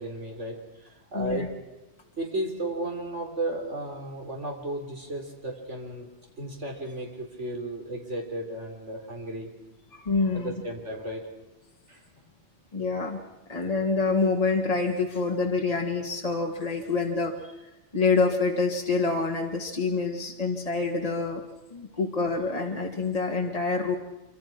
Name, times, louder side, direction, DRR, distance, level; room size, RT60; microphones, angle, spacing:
voice 1, 0.0-1.5 2.2-6.1 6.4-9.5 10.3-11.2 11.9-12.0, right 1 dB, 90° right, 2 dB, 4.1 m, -34 dB
voice 2, 1.1-1.5 9.9-10.5 12.7-13.2 13.5-17.3 17.9-21.4 21.7-23.9, left 4 dB, 30° left, 1 dB, 2.3 m, -26 dB
26.5 x 25.5 x 6.1 m, 0.95 s
omnidirectional pair, 1.2 m